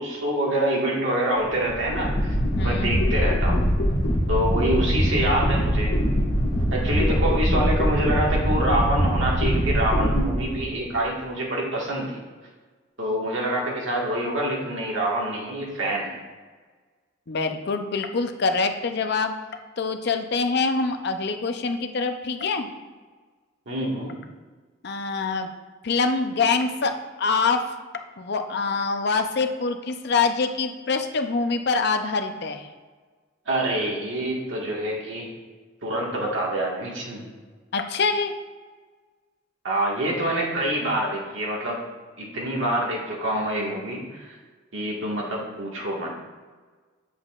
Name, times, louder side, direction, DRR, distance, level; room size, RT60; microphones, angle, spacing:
voice 1, 0.0-2.3 2.6-3.6 4.3-5.9 6.7-12.2 13.0-16.2 23.6-24.2 33.4-35.3 35.8-37.2 39.6-41.8 42.2-44.4 44.7-46.1, right 1 dB, 75° right, -3 dB, 1.7 m, -26 dB
sound 1, 1.5-11.0, equal, 90° left, 1.6 m, -23 dB
voice 2, 2.5-3.0 17.3-19.3 19.8-22.7 24.8-25.5 25.8-27.7 28.2-32.7 37.7-38.3, left 4 dB, 55° left, 6 dB, 0.6 m, -25 dB
8.4 x 6.9 x 2.4 m, 1.4 s
head